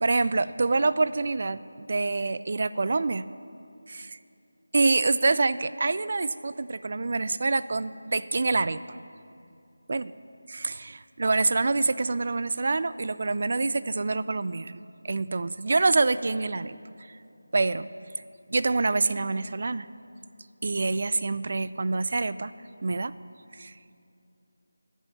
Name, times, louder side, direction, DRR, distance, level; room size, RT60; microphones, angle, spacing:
voice 1, 0.0-3.2 3.9-4.2 4.7-8.8 9.9-10.1 10.5-16.8 17.5-17.9 18.5-19.9 20.6-22.5 22.8-23.1 23.5-23.7, right 3 dB, 50° right, 15 dB, 0.4 m, -26 dB
13.5 x 5.5 x 9.1 m, 2.6 s
figure-of-eight pair, 170°, 0 cm